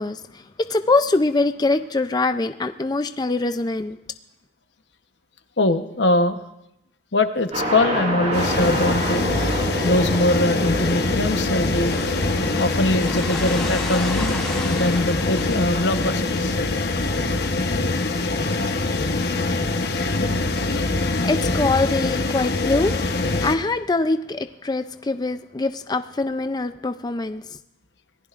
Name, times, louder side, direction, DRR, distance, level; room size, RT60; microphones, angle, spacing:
voice 1, 0.0-4.0 20.8-27.4, left 3 dB, 25° left, 9 dB, 0.4 m, -24 dB
voice 2, 5.6-6.4 7.1-12.0 12.6-14.4 14.6-16.6 19.3-19.6, left 2 dB, 85° left, 8 dB, 1.0 m, -22 dB
sound 1, 7.5-15.1, right 1 dB, 40° right, 5.1 m, -29 dB
sound 2, 8.3-23.6, left 2 dB, 65° left, 1.1 m, -24 dB
sound 3, 11.7-17.5, left 1 dB, 5° left, 3.5 m, -35 dB
26.0 x 18.5 x 2.5 m, 0.84 s
head